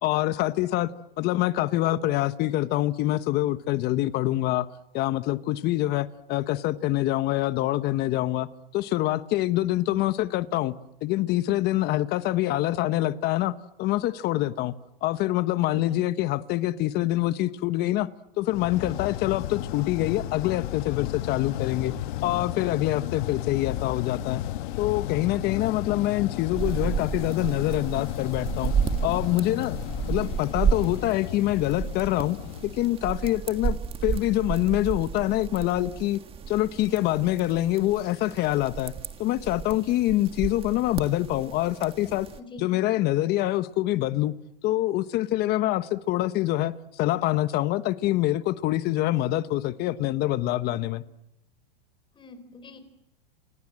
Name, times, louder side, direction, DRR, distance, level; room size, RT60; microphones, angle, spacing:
voice 1, 0.0-4.7 4.9-8.5 8.7-10.7 11.0-14.7 15.0-18.1 18.4-21.9 22.2-24.4 24.8-28.7 29.0-29.8 30.1-36.2 36.5-38.9 39.2-42.3 42.6-44.3 44.6-51.0, left 15 dB, 35° left, 1.2 m, -25 dB
sound 1, 18.5-33.5, left 14 dB, 55° left, 1.4 m, -34 dB
sound 2, 26.6-42.4, right 7 dB, 20° right, 1.7 m, -32 dB
voice 2, 42.4-42.7 50.6-50.8 52.1-52.8, left 2 dB, 15° left, 4.7 m, -45 dB
29.5 x 26.5 x 7.6 m
hypercardioid pair, 135°, 29 cm